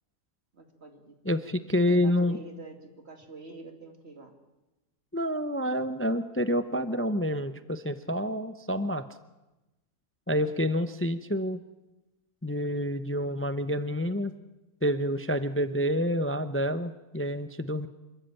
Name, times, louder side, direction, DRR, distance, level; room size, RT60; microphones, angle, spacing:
voice 1, 0.5-1.2 1.8-4.3 10.4-10.5, right 3 dB, 50° right, 5 dB, 2.6 m, -46 dB
voice 2, 1.3-2.4 5.1-9.1 10.3-11.6 12.4-14.3 14.8-17.9, equal, 15° left, 11 dB, 0.4 m, -28 dB
27.0 x 13.5 x 9.0 m, 1.0 s
omnidirectional pair, 1.5 m